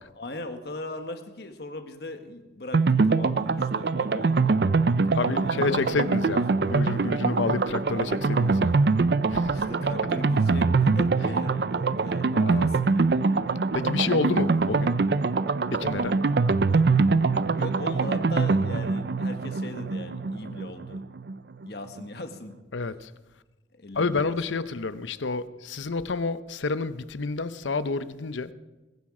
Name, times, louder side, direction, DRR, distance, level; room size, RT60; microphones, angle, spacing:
voice 1, 0.1-4.7 5.0-6.4 9.5-13.2 14.3-14.5 17.6-21.0 21.6-22.6 23.7-24.4, left 2 dB, 60° left, 7 dB, 1.4 m, -39 dB
sound 1, 2.7-21.3 21.6-21.7 22.0-22.1, right 4 dB, 60° right, 0.5 m, -24 dB
voice 2, 5.1-8.7 9.3-9.9 12.3-12.7 13.7-14.9 15.7-16.1 22.7-23.1 23.9-28.5, left 4 dB, 90° left, 14 dB, 0.7 m, -29 dB
21.5 x 10.5 x 4.9 m, 1.1 s
head